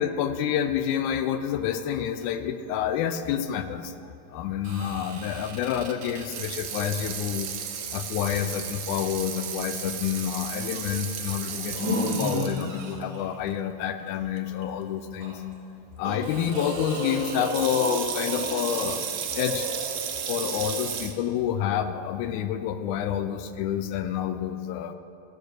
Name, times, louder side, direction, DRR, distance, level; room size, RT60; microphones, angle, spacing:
voice 1, 0.0-3.9 4.3-7.5 7.9-15.4 16.0-19.1 19.4-19.7 20.3-25.0, left 9 dB, 85° left, 10 dB, 2.0 m, -28 dB
Water tap faucet / Sink (filling or washing), 4.6-13.0 13.5-13.6 14.4-14.6 16.2-21.1, right 7 dB, 70° right, 1.6 m, -35 dB
sound 1, 11.5-12.7 13.0-13.3 15.2-15.3 16.0-19.0 19.4-19.9, equal, 15° left, 1.9 m, -31 dB
13.5 x 4.9 x 6.4 m, 2.5 s
omnidirectional pair, 3.4 m